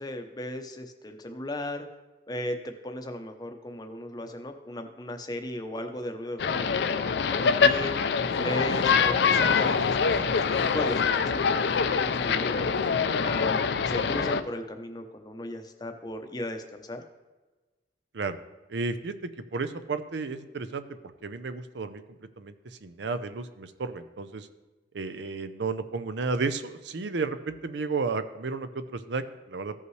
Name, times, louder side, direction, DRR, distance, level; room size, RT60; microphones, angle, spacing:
voice 1, 0.0-1.9 2.3-8.0 8.4-12.7 13.2-17.0, left 1 dB, 20° left, 6 dB, 0.7 m, -36 dB
sound 1, 6.4-14.4, left 5 dB, 65° left, 0.4 m, -24 dB
sound 2, 7.3-12.9, right 1 dB, 55° right, 1.2 m, -47 dB
voice 2, 18.7-20.8 21.2-22.0 22.4-22.5 22.8-24.5 24.9-29.7, right 4 dB, 75° right, 11 dB, 0.5 m, -32 dB
15.0 x 5.5 x 3.2 m, 1.2 s
head